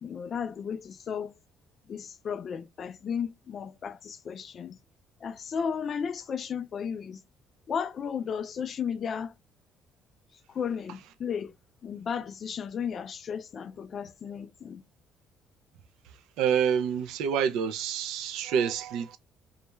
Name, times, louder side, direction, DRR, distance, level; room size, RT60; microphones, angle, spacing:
voice 1, 0.0-1.3 1.9-4.8 5.2-7.2 7.7-9.3 10.5-11.5 11.8-14.8, left 7 dB, 35° left, 0.3 m, -34 dB
voice 2, 16.4-19.2, right 7 dB, 90° right, 0.4 m, -27 dB
2.3 x 2.1 x 2.9 m
cardioid pair, 160°, 0 cm